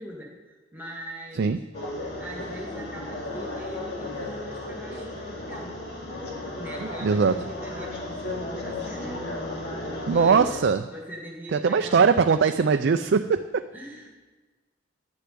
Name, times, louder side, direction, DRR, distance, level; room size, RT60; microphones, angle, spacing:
voice 1, 0.0-1.6 2.2-5.9 6.6-9.3 9.8-10.6 10.9-12.1 13.7-14.1, equal, 10° right, -2 dB, 2.0 m, -41 dB
sound 1, 1.7-10.6, left 1 dB, 55° left, 2.7 m, -35 dB
voice 2, 7.0-7.5 10.1-10.8 11.5-13.6, right 5 dB, 55° right, 8 dB, 0.4 m, -21 dB
11.0 x 6.8 x 9.4 m, 1.3 s
head